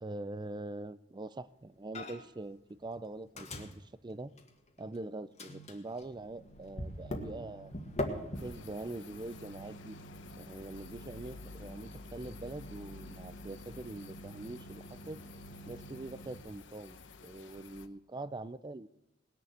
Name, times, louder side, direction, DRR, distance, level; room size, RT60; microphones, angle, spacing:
voice 1, 0.0-4.3 4.8-7.8 8.4-10.0 10.4-15.2 15.7-18.9, right 2 dB, 25° right, 16 dB, 0.5 m, -43 dB
Microwave oven, 1.9-2.4 2.7-5.0 5.4-16.4, left 1 dB, 35° left, 1.8 m, -44 dB
sound 1, 8.3-17.9, left 5 dB, 70° left, 0.9 m, -54 dB
19.5 x 6.9 x 7.9 m, 0.91 s
head